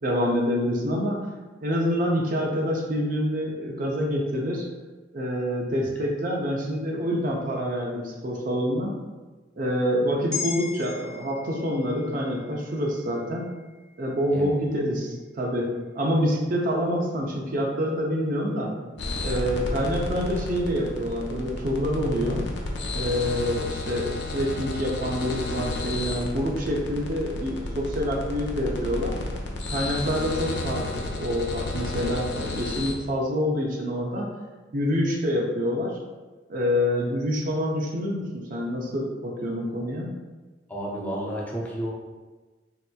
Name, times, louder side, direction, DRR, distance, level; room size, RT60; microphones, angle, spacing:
voice 1, 0.0-1.2 1.6-4.7 5.1-8.9 9.6-13.5 14.0-18.7 19.2-22.4 22.9-29.2 29.7-34.3 34.7-36.0 36.5-40.1, equal, 50° right, -1 dB, 0.5 m, -27 dB
sound 1, 10.3-14.8 15.2-15.3, left 7 dB, 15° right, 0.8 m, -39 dB
sound 2, 19.0-32.9, left 2 dB, 75° left, 0.5 m, -32 dB
voice 2, 40.7-41.9, right 1 dB, 10° left, -4 dB, 0.5 m, -31 dB
3.2 x 2.8 x 2.2 m, 1.3 s
head